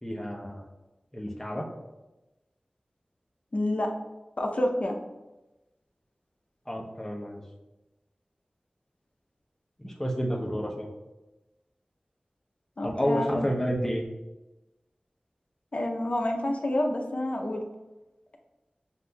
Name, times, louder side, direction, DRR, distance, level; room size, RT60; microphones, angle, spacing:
voice 1, 0.0-0.6 1.1-1.7 6.7-7.4 9.8-10.9 12.8-14.0, equal, 15° left, -1 dB, 0.7 m, -30 dB
voice 2, 3.5-3.9 4.4-5.0 12.8-13.5 15.7-17.6, left 1 dB, 50° left, 2 dB, 0.6 m, -28 dB
7.1 x 2.5 x 2.3 m, 1.1 s
wide cardioid pair, 60°, 3 cm